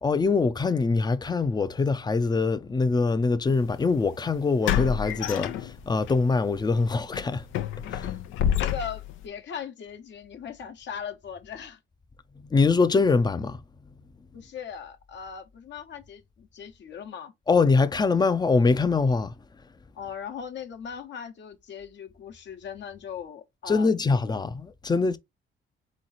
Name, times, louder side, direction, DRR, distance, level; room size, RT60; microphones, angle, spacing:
voice 1, 0.0-7.4 7.9-8.1 12.4-13.6 17.5-19.3 23.7-25.2, left 4 dB, 20° left, 0.5 m, -23 dB
sound 1, 3.5-3.7 4.6-6.1 6.5-6.7 7.1-9.2, left 10 dB, 90° left, 0.6 m, -28 dB
voice 2, 8.6-11.8 14.3-17.3 19.9-23.9, left 7 dB, 65° left, 1.0 m, -39 dB
3.9 x 3.1 x 4.0 m
cardioid pair, 90°, 20 cm